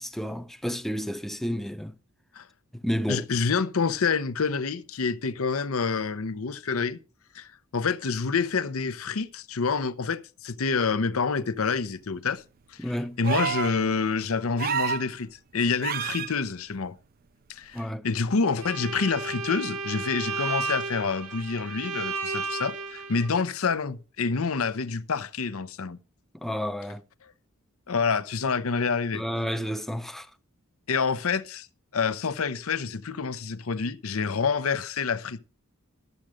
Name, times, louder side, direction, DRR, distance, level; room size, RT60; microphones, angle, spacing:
voice 1, 0.0-1.9 2.8-3.2 12.8-13.2 17.7-18.0 26.3-27.0 29.1-30.3, equal, ahead, 0.7 m, -31 dB
voice 2, 3.1-7.0 7.3-12.4 13.2-17.0 17.5-26.0 27.9-29.2 30.9-31.7 31.9-35.4, left 5 dB, 75° left, 0.7 m, -27 dB
sound 1, 13.2-13.8 14.6-15.1 15.8-16.3 17.8-17.9, right 8 dB, 45° right, 0.4 m, -28 dB
Bowed string instrument, 18.6-23.3, right 4 dB, 85° right, 2.1 m, -33 dB
12.0 x 7.6 x 4.9 m
head